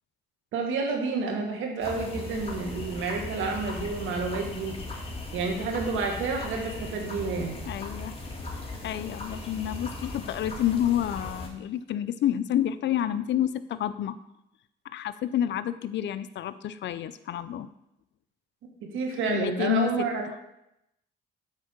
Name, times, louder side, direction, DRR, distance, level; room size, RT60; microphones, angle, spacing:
voice 1, 0.5-4.8 5.3-7.6 18.8-20.4, right 4 dB, 90° right, 2 dB, 1.7 m, -30 dB
sound 1, 1.8-11.5, left 2 dB, 30° left, 2.0 m, -38 dB
voice 2, 7.7-8.1 8.8-14.2 14.8-17.7 19.3-20.1, left 11 dB, 65° left, 13 dB, 0.6 m, -29 dB
8.3 x 4.5 x 6.5 m, 0.84 s
cardioid pair, 90°, 20 cm